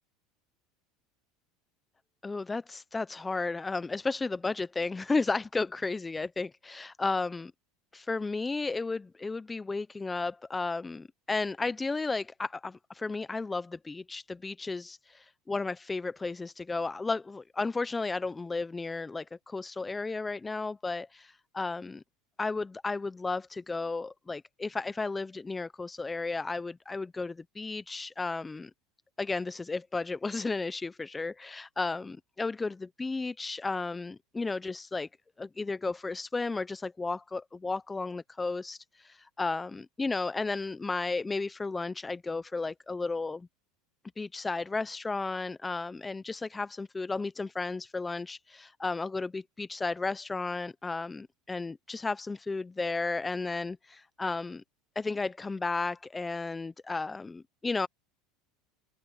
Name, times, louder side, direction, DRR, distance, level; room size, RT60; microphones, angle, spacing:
voice 1, 2.2-7.5 7.9-22.0 22.4-28.7 29.2-35.1 35.4-43.5 44.2-54.6 55.0-57.9, left 3 dB, 10° left, 0.4 m, -33 dB
open air
supercardioid pair, 140°, 0 cm